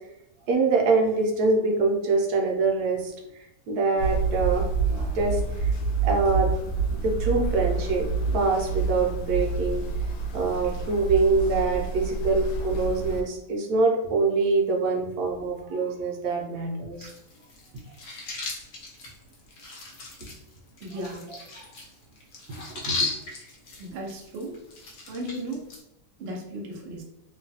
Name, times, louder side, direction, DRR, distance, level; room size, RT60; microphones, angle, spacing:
voice 1, 0.5-5.7 6.0-6.5 6.9-9.8 10.3-17.1 21.6-21.7 22.8-23.1, right 3 dB, 70° right, 1 dB, 1.0 m, -25 dB
sound 1, 4.0-13.2, right 4 dB, 80° left, 1.2 m, -28 dB
sound 2, 17.0-25.8, left 3 dB, 60° left, 1.0 m, -37 dB
voice 2, 20.8-21.3 23.8-24.6 25.1-25.6 26.2-27.0, right 1 dB, 90° right, -1 dB, 0.5 m, -35 dB
3.1 x 2.2 x 2.7 m, 0.84 s
omnidirectional pair, 1.9 m